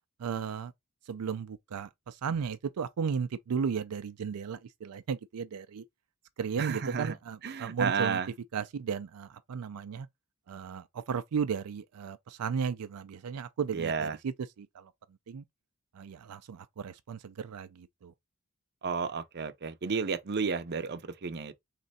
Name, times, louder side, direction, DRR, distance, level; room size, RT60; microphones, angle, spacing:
voice 1, 0.2-0.7 1.1-5.8 6.4-8.2 8.5-10.1 10.5-14.9 15.3-15.4 15.9-18.1, right 6 dB, 90° right, 0.4 m, -35 dB
voice 2, 6.6-7.1 7.4-8.3 13.7-14.2 18.8-21.5, right 5 dB, 50° right, 0.6 m, -32 dB
3.8 x 3.3 x 4.1 m
head